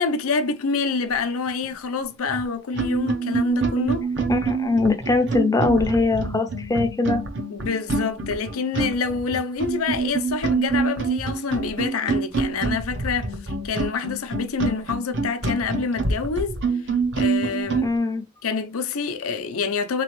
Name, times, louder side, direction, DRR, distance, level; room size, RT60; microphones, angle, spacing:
voice 1, 0.0-4.1 7.5-16.6 17.2-17.9 18.4-20.0, left 5 dB, 70° left, 0.6 m, -27 dB
sound 1, 2.3-2.4 2.7-17.9, right 4 dB, 55° right, 0.7 m, -26 dB
voice 2, 4.3-7.2 17.8-18.3, left 3 dB, 15° left, 0.5 m, -22 dB
3.9 x 3.0 x 3.0 m
head